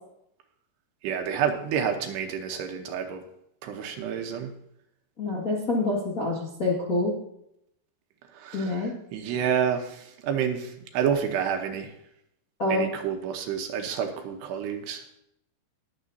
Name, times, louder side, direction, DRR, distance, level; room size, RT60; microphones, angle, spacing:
voice 1, 1.0-3.2 3.6-4.5 8.3-11.9 12.7-15.2, right 8 dB, 75° right, 5 dB, 2.9 m, -29 dB
voice 2, 5.2-7.1 8.5-8.9 12.6-12.9, left 2 dB, 75° left, -5 dB, 0.8 m, -26 dB
21.0 x 7.4 x 2.7 m, 0.76 s
omnidirectional pair, 5.2 m